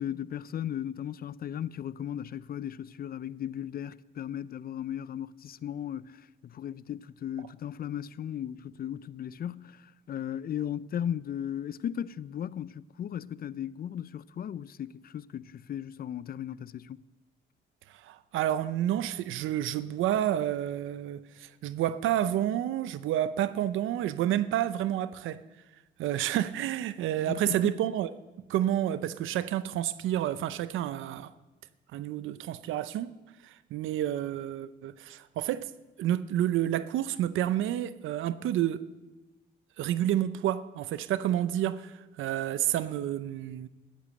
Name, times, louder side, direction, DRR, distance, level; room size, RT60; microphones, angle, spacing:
voice 1, 0.0-17.0 27.3-27.8, left 10 dB, 50° left, 0.5 m, -36 dB
voice 2, 17.9-25.4 26.0-28.2 28.5-31.3 31.9-33.1 33.4-35.7 36.0-38.8 39.8-43.7, right 12 dB, 85° right, 0.6 m, -29 dB
14.0 x 11.5 x 7.5 m
cardioid pair, 90°, 20 cm